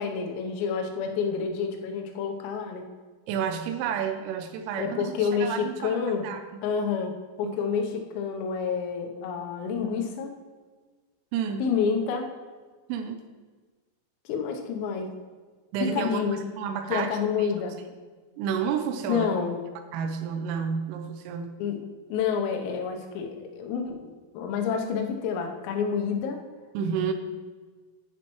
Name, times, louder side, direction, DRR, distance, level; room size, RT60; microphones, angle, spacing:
voice 1, 0.0-2.9 4.8-6.2 6.6-10.3 11.6-12.3 14.3-15.1 15.9-16.4 16.9-17.8 19.1-19.6 21.6-21.8 22.1-24.1 24.4-26.4, left 6 dB, 85° left, 3 dB, 3.7 m, -28 dB
voice 2, 3.3-6.6 7.4-7.6 11.3-11.7 12.9-13.2 15.7-16.3 16.6-17.1 17.4-17.5 18.4-19.3 19.9-21.5 26.7-27.1, right 7 dB, 85° right, 7 dB, 3.2 m, -30 dB
10.5 x 10.0 x 3.1 m, 1.4 s
omnidirectional pair, 5.9 m